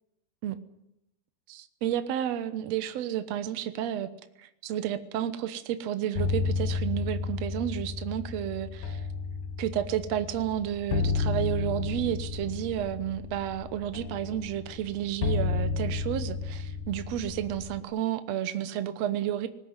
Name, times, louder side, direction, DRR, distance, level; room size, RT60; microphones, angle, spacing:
voice 1, 1.5-4.1 4.4-9.0 9.6-19.5, right 11 dB, 75° right, 10 dB, 1.5 m, -31 dB
sound 1, 6.2-17.8, left 4 dB, 65° left, 2.5 m, -32 dB
20.5 x 19.0 x 9.6 m, 0.82 s
omnidirectional pair, 4.5 m